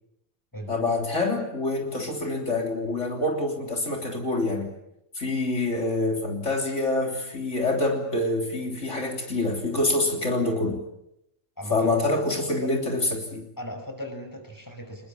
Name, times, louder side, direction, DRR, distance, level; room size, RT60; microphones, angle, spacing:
voice 1, 0.7-4.7 5.1-10.8 11.7-13.5, left 2 dB, 70° left, 2 dB, 3.8 m, -26 dB
voice 2, 11.6-12.0 12.6-12.7 13.6-15.1, left 1 dB, 15° left, 5 dB, 5.5 m, -36 dB
26.5 x 22.0 x 8.6 m, 0.81 s
omnidirectional pair, 1.3 m